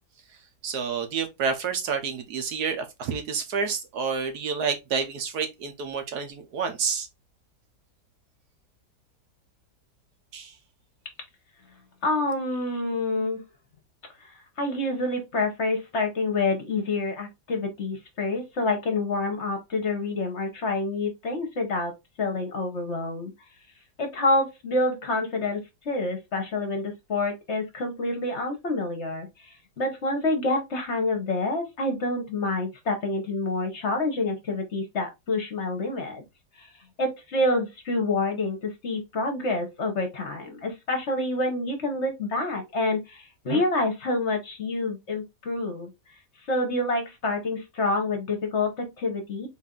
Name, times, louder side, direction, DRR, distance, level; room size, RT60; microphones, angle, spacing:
voice 1, 0.6-7.1 10.3-10.5, right 6 dB, 70° right, 1.3 m, -29 dB
voice 2, 12.0-13.4 14.2-14.3 14.6-23.3 24.0-36.2 36.6-36.7 37.0-45.9 46.5-49.5, left 2 dB, 45° left, 1.1 m, -27 dB
4.2 x 2.7 x 3.6 m
omnidirectional pair, 1.8 m